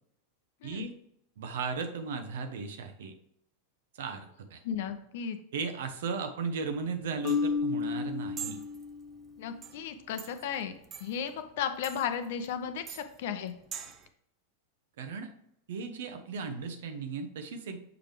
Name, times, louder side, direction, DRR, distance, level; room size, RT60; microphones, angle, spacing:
voice 1, 0.6-0.9 1.4-3.1 4.0-4.6 5.5-8.6 15.0-15.3 15.7-17.8, right 5 dB, 55° right, 7 dB, 0.9 m, -36 dB
voice 2, 4.6-5.4 9.4-10.7 11.0-13.5, left 8 dB, 55° left, 9 dB, 0.7 m, -35 dB
sound 1, 6.7-14.1, right 8 dB, 30° right, 0.7 m, -46 dB
Marimba xylophone, 7.2-9.3, left 5 dB, 10° left, 0.5 m, -32 dB
7.0 x 5.0 x 3.2 m, 0.74 s
figure-of-eight pair, 90°, 0 cm